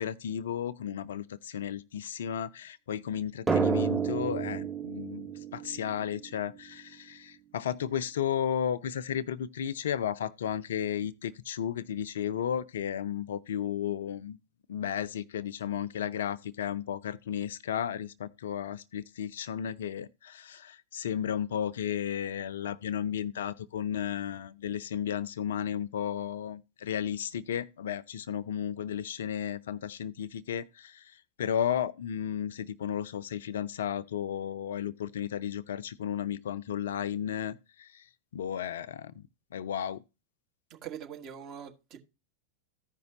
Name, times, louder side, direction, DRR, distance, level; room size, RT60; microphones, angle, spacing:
voice 1, 0.0-14.4 14.7-40.0, left 9 dB, 60° left, 0.5 m, -34 dB
Drum, 3.5-6.8, right 6 dB, 10° right, 1.4 m, -31 dB
voice 2, 40.7-42.0, right 9 dB, 35° right, 1.6 m, -43 dB
15.0 x 5.3 x 2.8 m
figure-of-eight pair, 90°, 0 cm